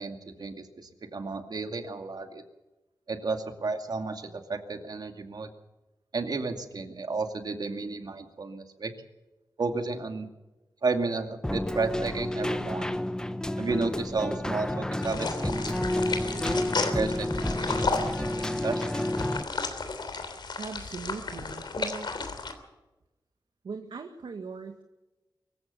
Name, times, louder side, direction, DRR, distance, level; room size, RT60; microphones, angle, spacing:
voice 1, 0.0-2.4 3.1-5.5 6.1-8.9 9.6-10.3 10.8-13.0 13.6-16.4 16.9-18.8, right 3 dB, 55° right, 6 dB, 2.4 m, -33 dB
Keyboard (musical), 11.4-19.4, left 1 dB, 10° left, 0.9 m, -30 dB
sound 1, 15.0-22.5, left 4 dB, 65° left, 3.1 m, -33 dB
voice 2, 20.6-22.2 23.6-24.8, right 4 dB, 75° right, 5 dB, 1.9 m, -39 dB
24.0 x 15.0 x 7.1 m, 1.0 s
wide cardioid pair, 130°, 8 cm